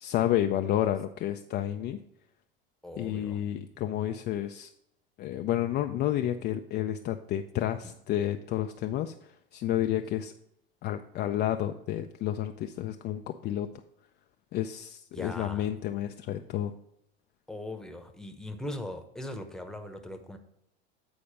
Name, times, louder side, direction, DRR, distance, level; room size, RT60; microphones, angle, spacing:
voice 1, 0.0-2.0 3.0-4.7 5.2-10.3 10.8-13.7 14.5-16.7, left 12 dB, 35° left, 6 dB, 0.4 m, -30 dB
voice 2, 2.8-3.4 7.8-7.9 15.1-15.8 17.5-20.4, left 1 dB, ahead, 5 dB, 0.9 m, -40 dB
8.7 x 4.2 x 5.0 m, 0.78 s
hypercardioid pair, 85°, 29 cm